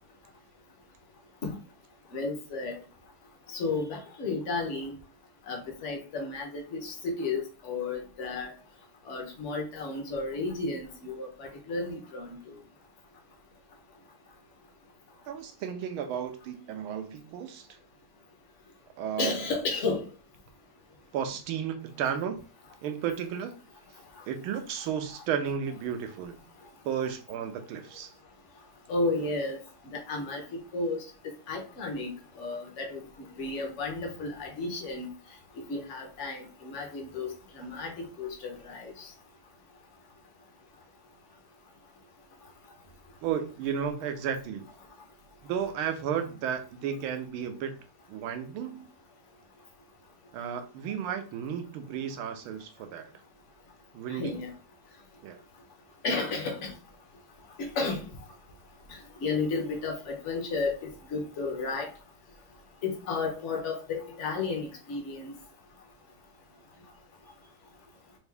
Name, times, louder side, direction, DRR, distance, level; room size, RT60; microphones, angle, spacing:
voice 1, 2.1-2.8 3.5-4.9 5.5-8.5 9.1-12.4 19.2-20.0 28.9-29.6 29.8-30.4 30.7-31.0 31.5-32.1 32.4-35.1 35.7-39.1 54.1-54.5 56.0-56.7 57.6-58.0 59.2-61.9 62.8-65.3, left 3 dB, 45° left, 2 dB, 1.0 m, -33 dB
voice 2, 15.3-17.7 19.0-19.5 21.1-22.4 22.8-23.5 24.3-26.4 26.8-28.1 43.2-44.6 45.4-47.7 48.1-48.9 50.3-53.1 53.9-54.5 55.2-55.4, right 8 dB, 85° right, 7 dB, 1.5 m, -33 dB
4.6 x 2.6 x 3.3 m, 0.36 s
omnidirectional pair, 2.3 m